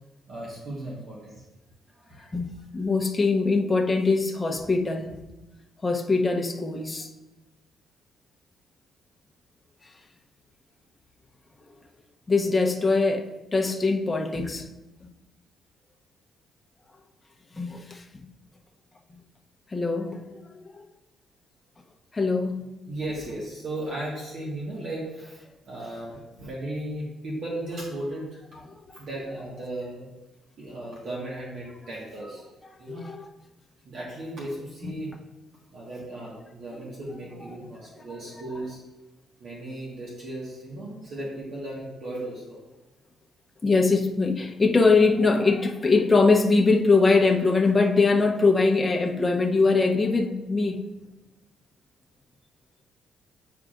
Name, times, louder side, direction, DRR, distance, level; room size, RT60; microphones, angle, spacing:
voice 1, 0.3-1.4 1.9-2.3 22.9-28.4 28.9-30.0 30.6-32.4 32.8-33.0 33.8-35.1 35.7-38.8 39.4-42.6, right 1 dB, 60° right, -5 dB, 1.6 m, -36 dB
voice 2, 2.3-5.3 5.8-7.1 12.3-14.7 15.0-15.1 17.5-18.3 19.1-19.2 19.7-20.2 20.5-20.8 22.1-22.7 32.9-33.3 34.8-34.9 43.6-50.8, left 3 dB, 25° left, 2 dB, 0.8 m, -22 dB
9.1 x 4.7 x 2.5 m, 1.0 s
cardioid pair, 90°, 0 cm